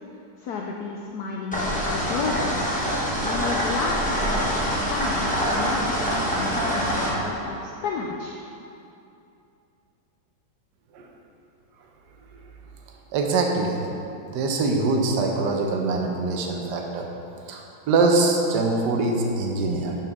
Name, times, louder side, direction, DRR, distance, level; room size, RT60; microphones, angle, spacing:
voice 1, 0.4-2.6 3.2-8.4, left 4 dB, 85° left, 0 dB, 0.8 m, -32 dB
sound 1, 1.5-7.1, equal, 10° left, 0.5 m, -25 dB
voice 2, 13.1-13.9 14.3-17.0 17.5-17.6 17.9-20.0, right 3 dB, 65° right, 1 dB, 1.3 m, -23 dB
10.5 x 4.6 x 3.6 m, 2.7 s
omnidirectional pair, 2.2 m